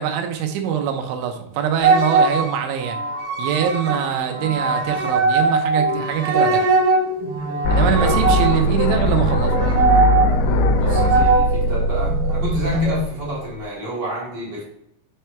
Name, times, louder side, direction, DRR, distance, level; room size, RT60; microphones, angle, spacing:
voice 1, 0.0-3.0 3.4-6.6 7.7-9.5, right 8 dB, 85° right, 4 dB, 3.1 m, -23 dB
sound 1, 1.8-13.0, right 3 dB, 60° right, 2.9 m, -21 dB
sound 2, 7.6-13.6, left 1 dB, 80° left, 2.7 m, -20 dB
voice 2, 7.7-8.2 8.7-8.8 10.4-14.6, right 1 dB, 35° right, -6 dB, 1.9 m, -30 dB
7.5 x 4.4 x 3.4 m, 0.78 s
omnidirectional pair, 5.2 m